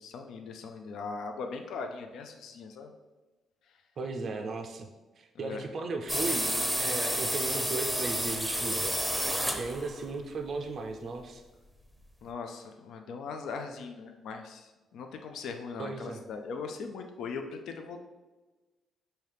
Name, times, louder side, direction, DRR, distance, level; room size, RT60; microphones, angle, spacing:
voice 1, 0.0-2.9 5.4-5.6 12.2-18.0, left 4 dB, 75° left, 5 dB, 0.4 m, -40 dB
voice 2, 4.0-4.9 5.2-9.0 9.6-11.4 15.8-16.2, right 3 dB, 50° right, 4 dB, 0.4 m, -36 dB
sound 1, 6.1-10.1, equal, ahead, 0.6 m, -30 dB
5.5 x 2.7 x 3.3 m, 1.2 s
cardioid pair, 90°, 0 cm